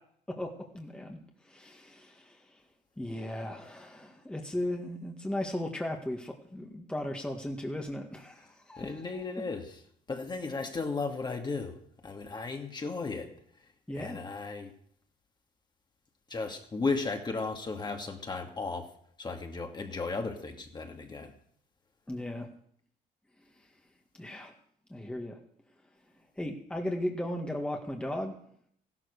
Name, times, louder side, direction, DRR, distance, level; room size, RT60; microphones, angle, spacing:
voice 1, 0.3-1.2 1.5-2.4 3.0-9.3 13.9-14.2 22.1-22.5 24.2-24.5 24.9-25.4 26.4-28.3, left 1 dB, 5° left, 1 dB, 1.9 m, -36 dB
voice 2, 8.8-9.8 10.1-11.7 12.0-13.3 13.9-14.7 16.3-18.9 19.2-21.3, left 4 dB, 25° left, 3 dB, 2.2 m, -35 dB
15.0 x 12.0 x 6.7 m, 0.66 s
cardioid pair, 110°, 17 cm